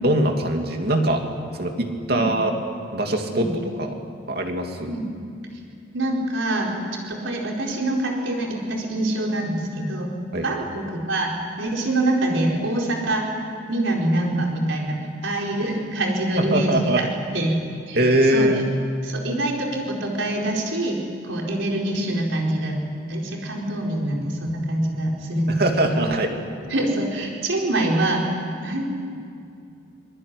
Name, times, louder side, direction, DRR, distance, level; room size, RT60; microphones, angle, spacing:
voice 1, 0.0-1.2 1.6-2.5 2.9-3.5 3.8-4.0 4.3-4.9 10.3-10.5 16.4-17.0 17.9-18.6 25.6-26.4, right 1 dB, 55° right, 3 dB, 2.8 m, -22 dB
voice 2, 5.9-10.1 10.4-13.3 13.7-17.1 17.3-17.6 17.9-18.0 18.3-18.6 19.0-21.0 21.2-22.8 23.1-26.1 26.7-28.3 28.6-28.9, right 1 dB, 85° right, -1 dB, 4.6 m, -25 dB
25.5 x 21.0 x 9.9 m, 2.4 s
head